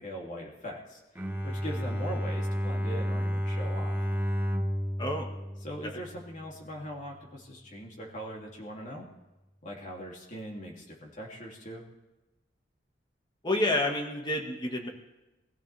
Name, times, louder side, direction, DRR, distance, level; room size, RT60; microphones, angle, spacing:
voice 1, 0.0-4.2 5.6-9.1 9.6-11.8, equal, 45° left, -2 dB, 3.0 m, -41 dB
Bowed string instrument, 1.1-6.4, equal, 10° right, 1.1 m, -31 dB
voice 2, 13.4-14.9, left 1 dB, 25° left, 1 dB, 1.9 m, -29 dB
23.5 x 15.5 x 3.5 m, 1.1 s
head